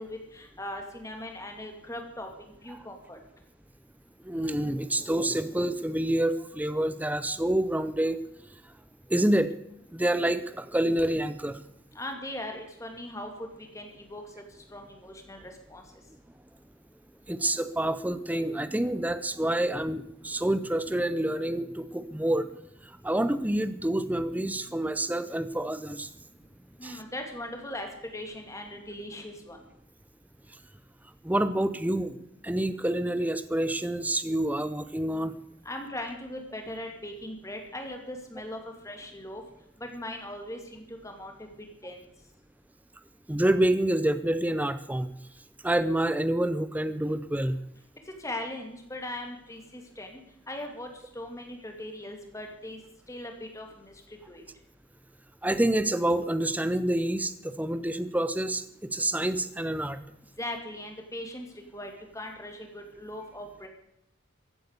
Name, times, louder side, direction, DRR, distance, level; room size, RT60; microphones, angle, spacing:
voice 1, 0.0-3.2 11.9-14.2 14.7-15.8 26.8-27.9 28.1-29.6 35.6-38.6 38.8-39.4 39.8-41.3 41.8-42.0 48.2-50.2 50.5-52.8 53.1-54.4 60.4-61.5 61.7-63.7, left 1 dB, 15° left, 3 dB, 2.4 m, -39 dB
voice 2, 4.2-8.5 9.1-9.5 9.9-11.6 17.3-22.5 22.8-26.1 26.8-27.0 31.2-32.2 32.4-35.3 43.3-45.1 45.6-47.6 55.4-60.0, right 1 dB, 10° right, 13 dB, 0.5 m, -27 dB
15.0 x 8.5 x 8.2 m, 0.79 s
head